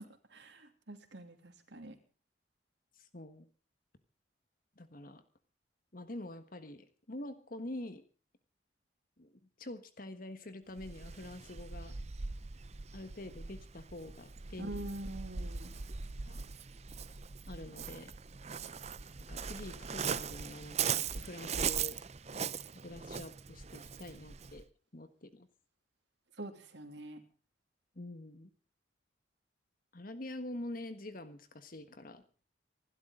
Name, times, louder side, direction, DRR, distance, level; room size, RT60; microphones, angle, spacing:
voice 1, 0.0-2.0 14.6-15.7 26.4-27.2, right 1 dB, 70° right, 7 dB, 2.9 m, -45 dB
voice 2, 3.0-3.5 4.8-5.2 5.9-8.0 9.2-9.3 9.6-12.0 12.9-14.9 16.3-16.4 17.5-18.1 19.3-22.0 22.8-24.6 24.9-25.5 27.9-28.5 29.9-32.2, left 1 dB, 50° left, 10 dB, 1.5 m, -46 dB
Waves surf, 10.8-24.6, right 6 dB, 35° right, 0.7 m, -40 dB
26.5 x 12.5 x 3.8 m, 0.37 s
head